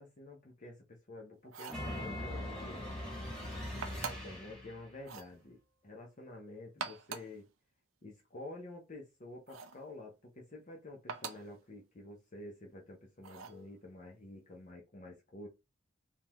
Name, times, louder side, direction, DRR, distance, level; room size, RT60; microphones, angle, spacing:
voice 1, 0.0-2.9 3.7-7.5 8.0-15.5, left 2 dB, 40° left, 0.6 m, -49 dB
sound 1, 1.4-1.9 3.8-4.4 5.0-5.3 6.6-7.4 9.5-9.8 11.1-11.5 13.2-13.6, right 6 dB, 80° right, 0.5 m, -43 dB
sound 2, 1.7-4.9, left 1 dB, 5° left, 1.5 m, -41 dB
3.6 x 2.2 x 3.0 m
head